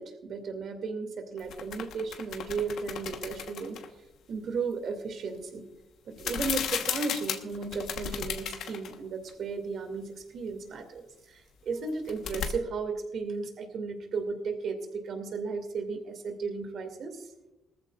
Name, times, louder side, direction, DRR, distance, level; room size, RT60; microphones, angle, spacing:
voice 1, 0.0-3.8 4.3-5.7 6.1-17.3, right 4 dB, 65° right, 6 dB, 2.3 m, -35 dB
sound 1, 1.4-3.9 6.2-9.0 9.3-9.4 11.9-12.5, left 8 dB, 80° left, 1.2 m, -35 dB
19.5 x 14.0 x 2.5 m, 0.95 s
cardioid pair, 90°, 0 cm